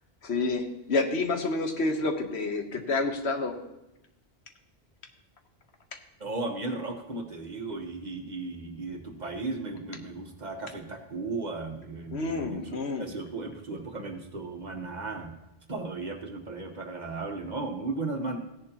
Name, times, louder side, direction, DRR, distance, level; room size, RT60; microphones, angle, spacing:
voice 1, 0.2-3.5 12.1-13.0, left 3 dB, 85° left, 5 dB, 1.4 m, -29 dB
voice 2, 6.2-15.3 15.7-18.4, right 3 dB, 45° right, 4 dB, 1.3 m, -35 dB
16.0 x 10.5 x 2.9 m, 0.93 s
omnidirectional pair, 1.1 m